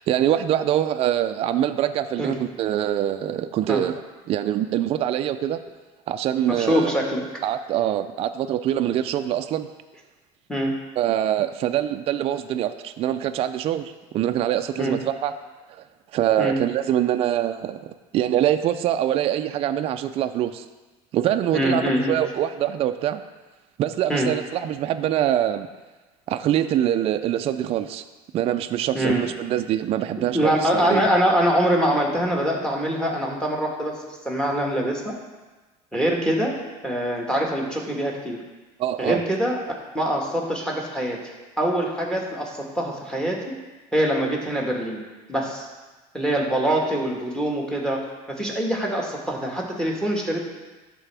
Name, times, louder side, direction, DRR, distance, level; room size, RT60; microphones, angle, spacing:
voice 1, 0.1-4.0 4.3-5.6 6.1-6.9 7.4-9.7 11.0-15.3 16.1-20.7 21.1-23.2 23.8-25.7 26.3-28.0 28.3-31.1 38.8-39.2, right 11 dB, 45° right, 8 dB, 0.4 m, -24 dB
voice 2, 6.6-7.2 10.5-10.8 14.8-15.0 16.4-16.6 21.5-22.2 24.1-24.3 28.9-29.3 30.3-33.9 34.2-35.2 35.9-38.4 39.0-39.6 39.9-41.2 41.6-43.6 43.9-45.0 45.3-45.7 46.1-48.0 48.3-50.4, equal, 5° left, -1 dB, 1.5 m, -24 dB
12.0 x 4.5 x 3.4 m, 1.2 s
supercardioid pair, 120°, 14 cm